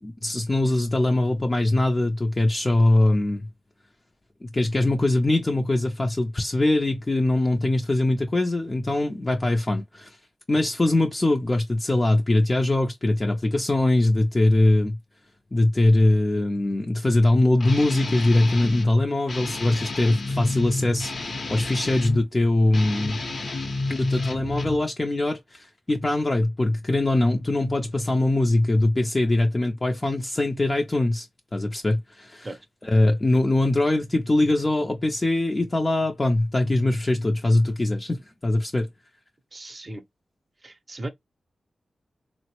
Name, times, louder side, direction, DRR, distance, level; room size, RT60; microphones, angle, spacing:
voice 1, 0.0-3.5 4.4-10.2 10.5-15.0 15.5-23.2 23.9-31.3 31.5-32.5 32.8-38.2 38.4-38.9, left 2 dB, 25° left, 0.4 m, -22 dB
Guitar, 17.6-18.9 19.3-22.2 22.7-24.8, left 2 dB, 55° left, 0.7 m, -30 dB
voice 2, 39.5-40.0 40.6-41.1, right 1 dB, 30° right, 0.6 m, -36 dB
3.6 x 2.0 x 2.9 m
wide cardioid pair, 115°, 0 cm